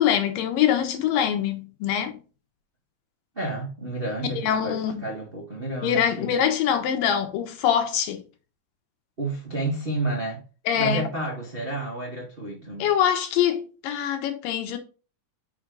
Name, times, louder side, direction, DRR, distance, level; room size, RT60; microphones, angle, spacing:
voice 1, 0.0-2.2 4.4-5.0 5.8-8.2 10.7-11.1 12.8-14.8, left 9 dB, 75° left, 2.6 m, -24 dB
voice 2, 3.3-6.3 9.2-10.4 10.7-12.9, right 2 dB, 50° right, 0.6 m, -30 dB
6.0 x 4.9 x 3.8 m
omnidirectional pair, 4.1 m